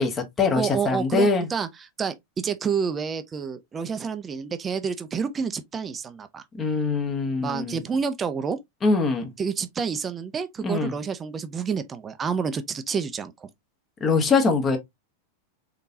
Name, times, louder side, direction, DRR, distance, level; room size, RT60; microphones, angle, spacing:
voice 1, 0.0-1.5 6.5-7.8 8.8-9.3 10.6-10.9 14.0-14.8, left 4 dB, 20° left, 1.1 m, -23 dB
voice 2, 0.6-1.7 2.0-6.4 7.4-8.6 9.4-13.5, right 6 dB, 20° right, 0.5 m, -29 dB
3.8 x 3.6 x 2.7 m
figure-of-eight pair, 90°, 0 cm